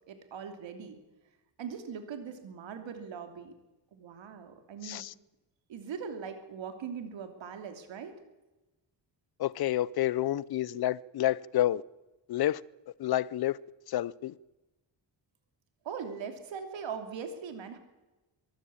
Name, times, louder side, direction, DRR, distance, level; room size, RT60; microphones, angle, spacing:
voice 1, 0.1-1.0 1.6-3.5 3.9-5.0 5.7-8.1 15.8-17.8, right 6 dB, 85° right, 3.1 m, -40 dB
voice 2, 4.8-5.1 9.4-11.8 12.3-12.6 13.0-13.6 13.9-14.3, left 13 dB, 60° left, 0.6 m, -29 dB
23.0 x 14.5 x 8.7 m
wide cardioid pair, 180°, 44 cm